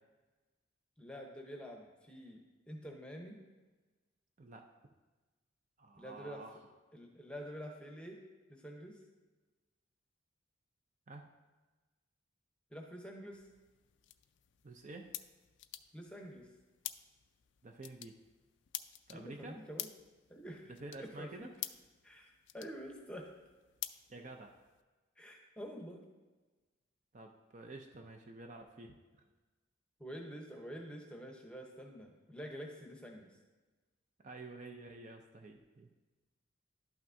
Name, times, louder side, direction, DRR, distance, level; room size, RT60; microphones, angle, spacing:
voice 1, 1.0-3.4 6.0-6.4 6.9-8.2 8.5-9.0 12.7-13.4 15.9-16.5 19.1-19.9 20.3-20.7 21.0-21.5 22.0-23.3 25.2-26.0 30.0-33.3, equal, 5° left, 1 dB, 0.8 m, -47 dB
voice 2, 5.8-6.6 11.1-11.3 14.6-15.1 17.6-18.2 19.1-19.6 20.7-21.5 24.1-24.5 27.1-28.9 34.2-35.9, right 2 dB, 35° right, 3 dB, 0.4 m, -49 dB
sound 1, 13.3-24.8, left 14 dB, 60° left, 0.3 m, -50 dB
11.5 x 5.8 x 2.6 m, 1.3 s
head